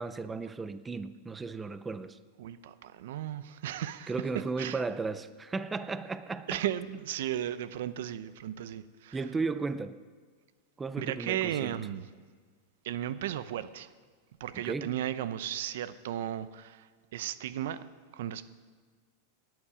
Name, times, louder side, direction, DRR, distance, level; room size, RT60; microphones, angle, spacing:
voice 1, 0.0-2.2 4.1-6.6 9.1-10.0 10.8-11.8 14.5-14.9, right 4 dB, 10° right, 0.4 m, -35 dB
voice 2, 2.4-4.1 4.6-4.8 6.5-9.2 11.0-12.1 12.8-13.9 14.4-17.8 18.1-18.4, right 11 dB, 65° right, 0.7 m, -35 dB
17.0 x 10.5 x 5.0 m
supercardioid pair, 170°, 0 cm